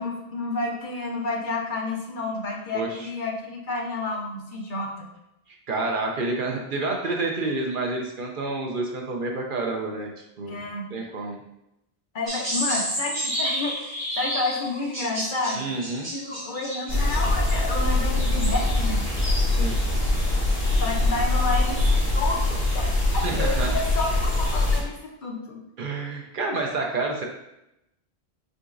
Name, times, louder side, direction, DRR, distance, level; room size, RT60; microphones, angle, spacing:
voice 1, 0.0-5.1 10.4-10.9 12.1-15.6 16.1-19.1 20.8-25.0 25.2-25.6, left 2 dB, 55° left, -1 dB, 0.8 m, -30 dB
voice 2, 5.7-10.1 10.4-10.6 10.9-11.4 15.5-16.1 19.5-19.8 23.2-23.8 25.8-27.2, right 3 dB, 60° right, 1 dB, 0.7 m, -28 dB
sound 1, 12.3-17.2, right 1 dB, 25° right, 1.4 m, -30 dB
sound 2, 16.9-24.8, left 2 dB, 75° left, 2.0 m, -23 dB
6.2 x 2.9 x 2.5 m, 0.86 s
omnidirectional pair, 1.1 m